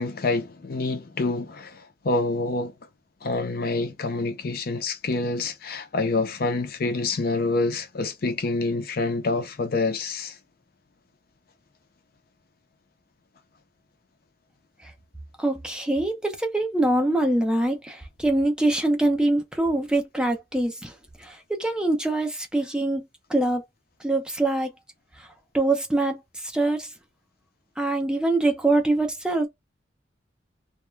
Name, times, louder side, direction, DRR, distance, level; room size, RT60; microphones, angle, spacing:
voice 1, 0.0-2.7 3.2-10.4, left 3 dB, 55° left, 0.5 m, -27 dB
voice 2, 15.4-23.6 24.0-24.7 25.2-25.3 25.5-26.9 27.8-29.5, right 2 dB, 5° right, 0.5 m, -24 dB
2.3 x 2.1 x 3.1 m
head